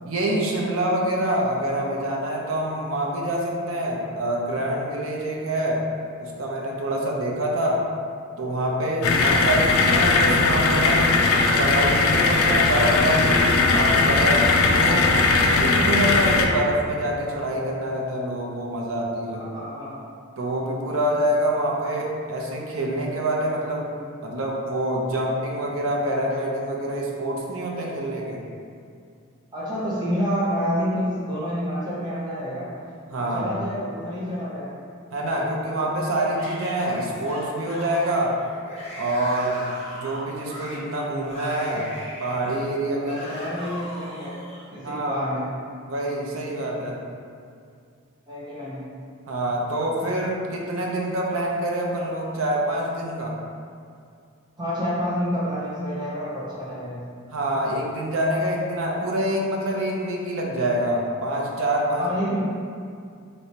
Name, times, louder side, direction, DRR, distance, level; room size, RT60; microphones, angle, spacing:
voice 1, 0.0-5.8 6.2-7.8 8.4-11.2 11.5-15.1 15.6-19.5 20.4-23.8 24.2-28.4 33.1-33.5 35.1-38.4 39.0-39.6 39.9-41.9 42.2-43.2 44.8-45.2 45.9-47.0 49.3-53.4 57.3-62.1, right 1 dB, 80° right, -2 dB, 0.6 m, -26 dB
sound 1, 9.0-16.5, left 3 dB, 90° left, 0.4 m, -19 dB
voice 2, 19.3-20.0 29.5-32.7 33.3-34.7 42.9-44.4 44.7-45.5 48.3-48.8 54.6-57.0 61.9-62.4, equal, 20° right, -8 dB, 0.6 m, -28 dB
Yell / Screaming, 36.4-44.7, equal, 30° left, 0.6 m, -39 dB
3.2 x 3.0 x 2.8 m, 2.3 s
head